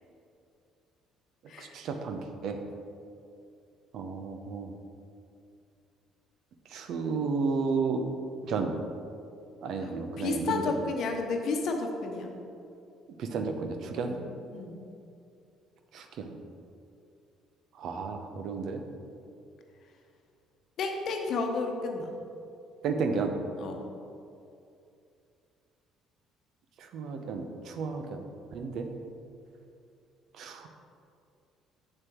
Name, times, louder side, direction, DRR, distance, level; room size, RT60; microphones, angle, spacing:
voice 1, 1.6-2.6 3.9-4.7 6.7-8.1 8.5-8.7 9.6-10.6 13.2-14.2 15.9-16.4 17.8-18.8 22.8-23.3 26.8-28.3 28.5-28.9 30.4-30.7, right 4 dB, 60° right, 5 dB, 0.7 m, -32 dB
voice 2, 9.8-12.3 14.0-14.2 14.5-14.8 20.8-22.1 23.6-23.8, left 4 dB, 60° left, 3 dB, 0.9 m, -32 dB
7.9 x 7.5 x 3.0 m, 2.6 s
hypercardioid pair, 55°, 0 cm